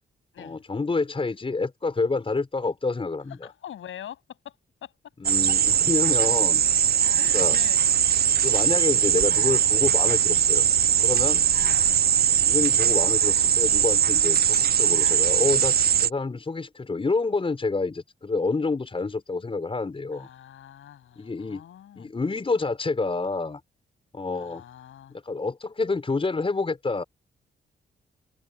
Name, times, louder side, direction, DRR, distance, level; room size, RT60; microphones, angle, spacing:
voice 1, 0.4-3.4 5.2-6.6 7.3-7.6 8.4-10.7 11.0-11.4 12.4-20.3 21.2-21.6 22.0-23.6 24.1-24.6 25.1-27.0, left 3 dB, 25° left, 4.3 m, -28 dB
voice 2, 3.4-4.5 4.8-4.9 7.1-7.9 11.6-11.8 20.1-22.1 24.3-25.2, left 10 dB, 85° left, 7.8 m, -44 dB
sound 1, 5.2-16.1, right 9 dB, 50° right, 0.6 m, -21 dB
cardioid pair, 105°, 20 cm